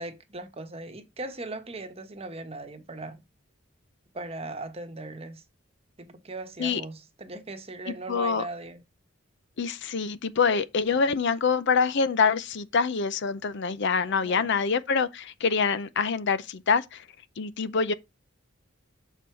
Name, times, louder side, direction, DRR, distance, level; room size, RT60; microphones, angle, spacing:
voice 1, 0.0-3.2 4.1-5.4 6.0-8.8 10.9-11.1 14.0-14.5, right 2 dB, 30° right, 1.1 m, -39 dB
voice 2, 8.1-8.4 9.6-17.0 17.4-17.9, left 5 dB, 60° left, 0.6 m, -25 dB
7.0 x 4.6 x 4.7 m
head